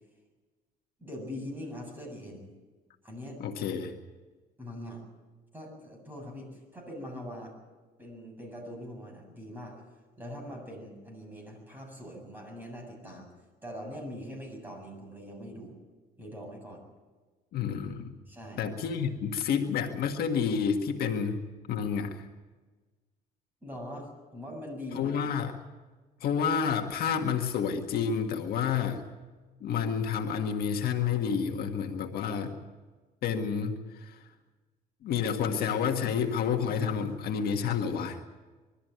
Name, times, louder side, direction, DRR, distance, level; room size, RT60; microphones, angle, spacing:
voice 1, 1.0-2.5 3.0-3.4 4.6-5.0 5.5-7.6 8.0-9.8 10.2-13.3 13.6-15.8 16.2-16.8 18.3-18.6 23.6-25.2, equal, 10° right, 2 dB, 7.6 m, -42 dB
voice 2, 3.4-3.9 17.5-18.2 18.6-21.4 21.7-22.3 24.9-25.5 26.2-29.0 29.6-32.6 33.2-34.2 35.0-38.2, left 7 dB, 65° left, 4 dB, 1.7 m, -29 dB
22.5 x 13.5 x 9.4 m, 1.3 s
cardioid pair, 110°, 17 cm